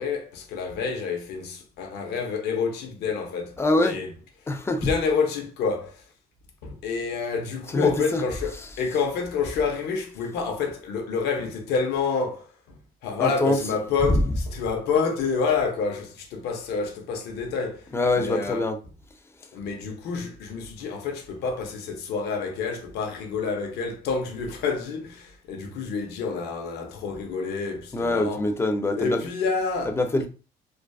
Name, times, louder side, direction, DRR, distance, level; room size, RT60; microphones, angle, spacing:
voice 1, 0.0-4.1 4.8-6.0 6.6-18.6 19.5-28.5 29.0-30.3, left 5 dB, 75° left, 0.6 m, -28 dB
voice 2, 3.6-4.0 4.5-4.9 7.7-8.2 13.2-13.6 17.9-18.8 27.9-29.2 30.0-30.3, left 2 dB, 15° left, 0.4 m, -24 dB
2.4 x 2.2 x 2.3 m
cardioid pair, 110°, 17 cm